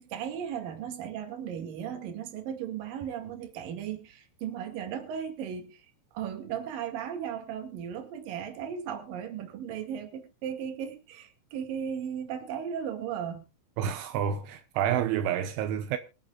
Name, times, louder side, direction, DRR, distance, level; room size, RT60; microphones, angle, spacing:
voice 1, 0.0-5.9 6.1-13.4, right 8 dB, 55° right, 3.4 m, -36 dB
voice 2, 13.8-16.0, right 9 dB, 80° right, 3.3 m, -29 dB
25.5 x 8.9 x 2.4 m
omnidirectional pair, 5.6 m